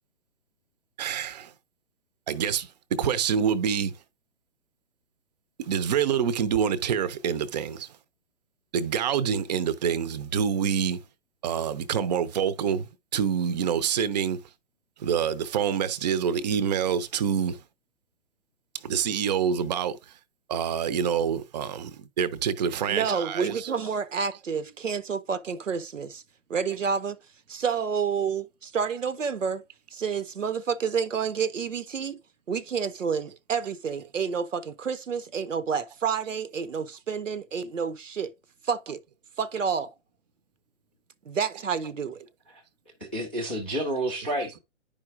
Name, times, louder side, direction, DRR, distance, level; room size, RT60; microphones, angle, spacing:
voice 1, 1.0-1.5 2.3-3.9 5.6-7.9 8.7-11.0 11.4-14.4 15.0-17.6 18.8-20.0 20.5-23.6, right 8 dB, 35° right, 0.6 m, -26 dB
voice 2, 22.9-26.2 26.5-27.2 27.5-29.6 29.9-32.2 32.5-38.3 38.6-39.0 39.4-39.9 41.3-42.2, right 6 dB, 80° right, 0.8 m, -29 dB
voice 3, 43.0-44.6, right 1 dB, 10° left, 0.3 m, -30 dB
10.5 x 5.0 x 2.4 m
figure-of-eight pair, 130°, 37 cm